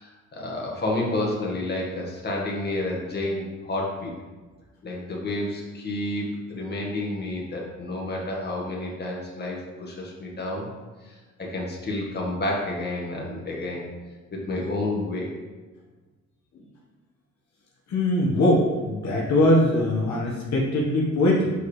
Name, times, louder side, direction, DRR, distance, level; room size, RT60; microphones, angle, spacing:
voice 1, 0.0-4.1 4.8-10.7 11.0-13.9 14.3-15.4, left 2 dB, 35° left, -2 dB, 1.7 m, -30 dB
voice 2, 17.9-21.5, left 1 dB, 65° left, -4 dB, 1.4 m, -21 dB
6.6 x 4.8 x 3.3 m, 1.3 s
cardioid pair, 90°, 30 cm